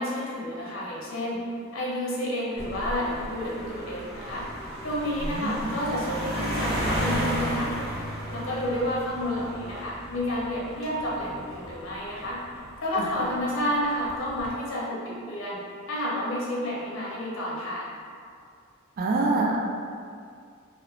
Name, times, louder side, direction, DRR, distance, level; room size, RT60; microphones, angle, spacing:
voice 1, 0.0-1.4 1.7-4.4 4.8-7.7 8.3-12.4 12.8-15.6 15.9-17.9, left 1 dB, 70° left, -5 dB, 0.6 m, -30 dB
sound 1, 2.6-13.3 14.1-14.5, equal, ahead, 0.9 m, -34 dB
voice 2, 5.2-5.8 12.9-13.1 19.0-19.8, right 2 dB, 45° right, -1 dB, 0.3 m, -26 dB
2.5 x 2.0 x 3.0 m, 2.2 s
head